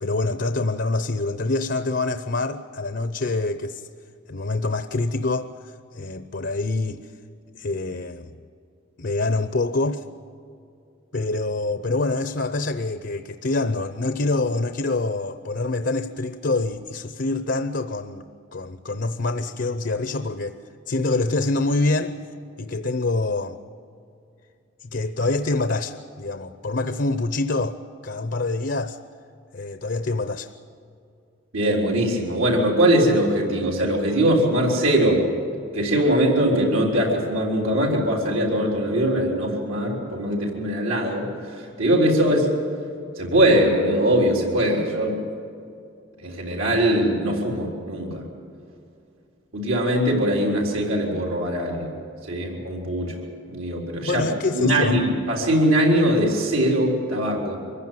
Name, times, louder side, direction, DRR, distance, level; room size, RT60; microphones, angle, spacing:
voice 1, 0.0-3.8 4.3-5.5 5.9-7.0 7.5-8.4 9.0-10.0 11.1-20.6 20.9-22.2 22.6-23.6 24.8-27.8 28.0-29.0 29.5-30.5 54.0-55.0, left 2 dB, 55° left, 10 dB, 0.7 m, -25 dB
voice 2, 31.5-35.3 35.7-42.5 43.2-45.2 46.2-48.2 49.5-52.0 52.3-54.2 54.5-57.6, right 1 dB, 75° right, -1 dB, 3.9 m, -21 dB
24.0 x 15.5 x 9.2 m, 2.5 s
head